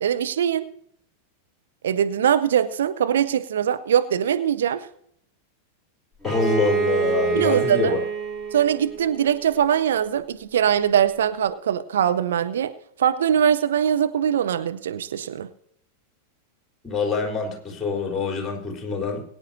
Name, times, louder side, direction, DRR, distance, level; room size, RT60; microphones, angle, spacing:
voice 1, 0.0-0.7 1.8-4.9 7.3-7.9 8.5-12.7 13.0-15.5, right 9 dB, 60° right, 9 dB, 0.7 m, -22 dB
voice 2, 6.2-8.0 16.8-19.2, left 4 dB, 15° left, 0 dB, 4.0 m, -25 dB
Bowed string instrument, 6.2-9.9, right 5 dB, 10° right, 3.7 m, -27 dB
22.5 x 9.8 x 2.7 m, 0.67 s
figure-of-eight pair, 90°, 0 cm